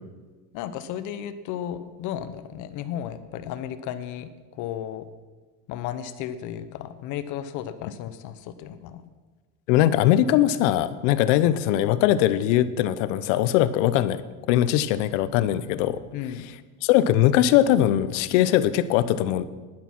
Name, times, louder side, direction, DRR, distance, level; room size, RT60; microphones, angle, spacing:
voice 1, 0.5-5.1 5.7-9.0 16.1-16.4, left 10 dB, 55° left, 12 dB, 0.9 m, -34 dB
voice 2, 9.7-14.2 14.5-16.0 16.8-19.4, left 12 dB, 85° left, 14 dB, 0.8 m, -21 dB
11.5 x 10.5 x 6.0 m, 1.3 s
cardioid pair, 140°, 36 cm